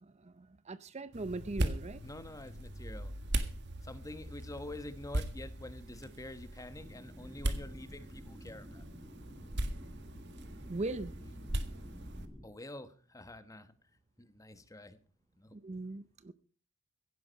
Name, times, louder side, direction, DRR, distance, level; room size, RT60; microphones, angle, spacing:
voice 1, 0.0-2.1 10.7-11.2 15.5-16.3, right 2 dB, 35° right, 0.6 m, -40 dB
sound 1, 1.1-12.3, right 1 dB, 60° right, 1.7 m, -39 dB
voice 2, 2.0-3.1 3.8-8.8 12.4-13.7 14.2-15.0 15.4-15.6, left 1 dB, 15° left, 1.2 m, -47 dB
sound 2, 6.7-12.5, equal, 5° right, 1.4 m, -52 dB
16.0 x 11.0 x 5.3 m
head